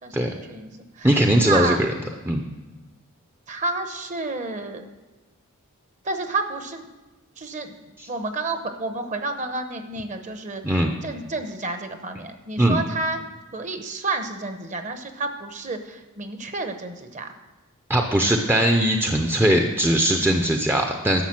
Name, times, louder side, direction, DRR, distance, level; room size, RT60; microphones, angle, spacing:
voice 1, 0.5-1.1 1.4-1.8 3.5-4.8 6.0-6.9 7.4-7.8 8.1-13.2 13.5-17.3, right 3 dB, 35° right, 7 dB, 0.9 m, -30 dB
voice 2, 1.0-1.9 2.3-2.4 8.0-8.1 10.6-10.9 12.6-12.8 17.9-21.2, right 1 dB, 10° right, 3 dB, 0.6 m, -20 dB
11.5 x 6.7 x 7.5 m, 1.2 s
head